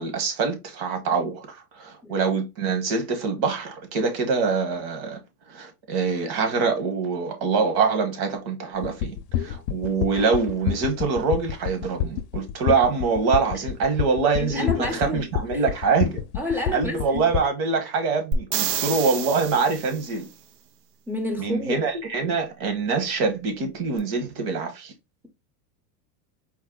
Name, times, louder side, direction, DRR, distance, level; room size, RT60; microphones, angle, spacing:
voice 1, 0.0-5.2 5.5-16.2 16.7-20.3 21.4-24.9, right 4 dB, 50° right, 1.3 m, -24 dB
sound 1, 8.8-17.4, left 10 dB, 75° left, 0.6 m, -28 dB
voice 2, 14.4-15.2 15.5-15.6 16.4-17.2 21.1-21.8, left 1 dB, 5° right, 0.5 m, -29 dB
sound 2, 18.3-20.2 24.0-24.1, right 7 dB, 85° right, 0.8 m, -28 dB
4.6 x 2.1 x 3.7 m
supercardioid pair, 135°, 48 cm